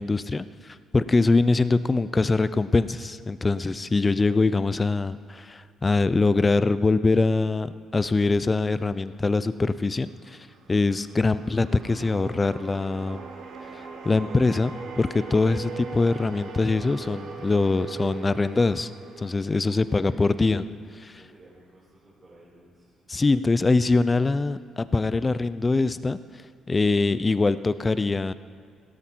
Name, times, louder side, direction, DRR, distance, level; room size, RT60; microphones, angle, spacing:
voice 1, 0.0-10.4 10.7-13.2 14.0-18.9 19.2-20.6 23.1-26.2 26.7-28.3, left 3 dB, 25° left, 14 dB, 0.6 m, -23 dB
sound 1, 9.9-20.2, right 5 dB, 75° right, 1.8 m, -40 dB
voice 2, 19.5-23.0 23.3-23.4, right 1 dB, 35° right, -7 dB, 4.8 m, -53 dB
16.5 x 13.0 x 4.6 m, 2.2 s
supercardioid pair, 70°, 0 cm